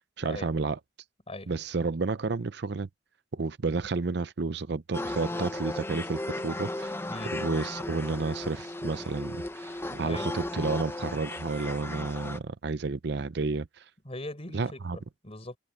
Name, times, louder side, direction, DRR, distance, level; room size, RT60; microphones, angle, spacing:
voice 1, 0.2-0.8 1.5-2.9 3.3-7.0 7.3-13.8 14.5-15.0, right 3 dB, 65° right, 0.6 m, -31 dB
sound 1, 4.9-12.4, left 1 dB, 15° left, 1.0 m, -35 dB
voice 2, 9.9-10.3 14.0-15.6, left 1 dB, 35° left, 5.5 m, -40 dB
head